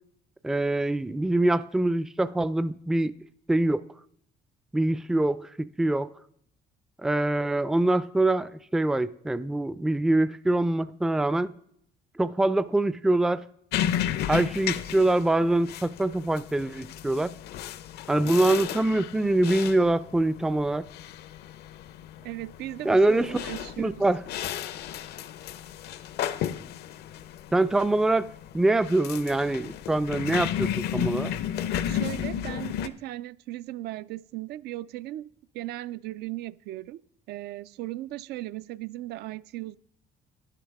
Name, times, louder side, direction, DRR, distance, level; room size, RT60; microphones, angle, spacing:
voice 1, 0.4-3.1 3.5-3.8 4.7-6.1 7.0-11.5 12.2-13.5 14.3-17.3 18.1-20.8 22.8-23.4 23.8-24.2 27.5-31.3, right 2 dB, 5° right, 0.3 m, -24 dB
sound 1, 13.7-32.9, left 10 dB, 75° left, 0.6 m, -33 dB
voice 2, 22.2-24.0 31.9-39.8, right 16 dB, 75° right, 0.4 m, -37 dB
12.5 x 9.9 x 3.5 m
cardioid pair, 110°, 17 cm